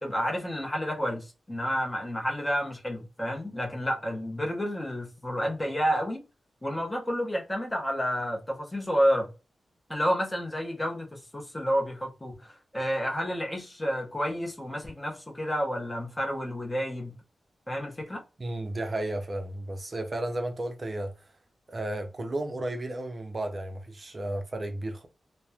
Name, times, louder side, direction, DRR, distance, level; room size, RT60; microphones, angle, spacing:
voice 1, 0.0-6.2 6.6-9.3 9.9-17.1 17.7-18.2, equal, 15° left, 0.7 m, -30 dB
voice 2, 18.4-21.1 21.7-25.1, right 1 dB, 30° right, 0.5 m, -33 dB
2.9 x 2.0 x 2.2 m
wide cardioid pair, 155°, 0 cm